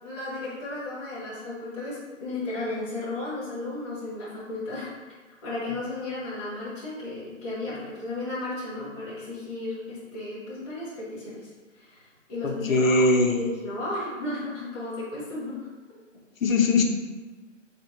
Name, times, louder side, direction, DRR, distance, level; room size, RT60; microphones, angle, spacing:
voice 1, 0.0-4.9 5.4-11.5 11.7-15.6, left 2 dB, 20° left, -9 dB, 1.3 m, -34 dB
voice 2, 12.4-13.4 16.4-16.8, left 2 dB, 85° left, 4 dB, 0.8 m, -21 dB
4.1 x 3.6 x 2.7 m, 1.3 s
hypercardioid pair, 150°, 39 cm